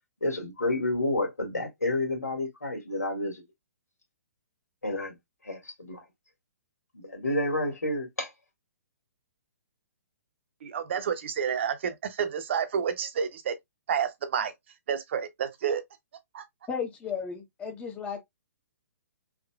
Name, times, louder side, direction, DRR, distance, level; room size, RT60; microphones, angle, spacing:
voice 1, 0.2-3.4 4.8-5.1 5.4-6.0 6.9-8.3, left 2 dB, 75° left, 1.9 m, -30 dB
voice 2, 10.6-13.6 13.9-14.5 14.9-15.8 16.3-16.4, right 7 dB, 50° right, 0.7 m, -29 dB
voice 3, 16.7-18.2, left 6 dB, 15° left, 0.9 m, -34 dB
3.6 x 3.0 x 2.3 m
figure-of-eight pair, 125°, 8 cm